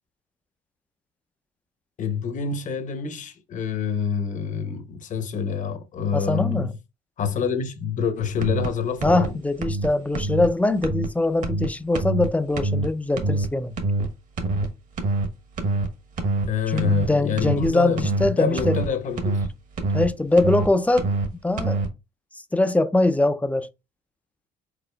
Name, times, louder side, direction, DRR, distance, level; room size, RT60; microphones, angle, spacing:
voice 1, 2.0-6.7 7.2-9.4 16.5-19.5, left 6 dB, 50° left, 0.9 m, -27 dB
voice 2, 6.1-6.7 9.0-13.8 16.7-18.8 19.9-21.1 21.4-21.8 22.5-23.7, left 2 dB, 10° left, 0.4 m, -22 dB
sound 1, 8.4-8.7 9.0-9.3 9.6-9.9 10.1-10.5 10.8-11.1 11.4-11.7 11.9-12.3 12.5-12.9 13.2-13.5 13.8-14.1 14.4-14.7 15.0-15.3 15.6-15.9 16.2-16.5 16.8-17.1 17.4-17.7 18.0-18.3 18.6-18.9 19.2-19.5 19.8-20.1 20.4-20.7 21.0-21.3 21.6-21.9, right 2 dB, 50° right, 1.2 m, -25 dB
4.9 x 4.1 x 2.3 m
cardioid pair, 110°, 17 cm